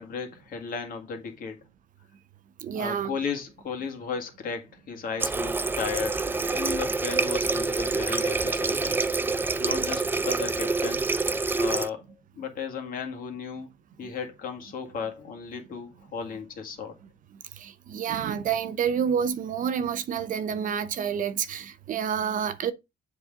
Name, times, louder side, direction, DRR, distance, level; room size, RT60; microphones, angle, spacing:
voice 1, 0.0-1.6 2.7-9.1 9.6-11.0 11.6-12.0 12.4-13.7 14.0-16.9, left 6 dB, 55° left, 1.9 m, -35 dB
voice 2, 2.6-3.1 17.6-22.7, right 7 dB, 50° right, 0.7 m, -28 dB
Water tap faucet, 5.2-11.9, right 3 dB, 10° right, 0.3 m, -27 dB
7.4 x 4.0 x 3.8 m
cardioid pair, 110°, 17 cm